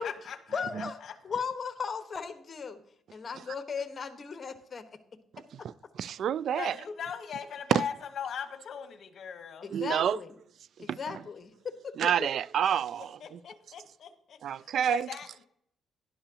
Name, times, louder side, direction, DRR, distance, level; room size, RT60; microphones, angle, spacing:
voice 1, 0.0-1.1 6.6-9.7 13.2-15.5, left 7 dB, 60° left, 1.1 m, -40 dB
voice 2, 0.5-1.0 1.2-2.8 3.1-4.8 9.6-10.3 10.8-12.1, left 6 dB, 40° left, 1.3 m, -36 dB
voice 3, 5.9-6.7 7.7-7.8 9.7-10.2 10.9-11.2 12.0-13.4 14.4-15.1, right 9 dB, 65° right, 0.3 m, -28 dB
11.5 x 11.0 x 2.9 m
cardioid pair, 90°, 0 cm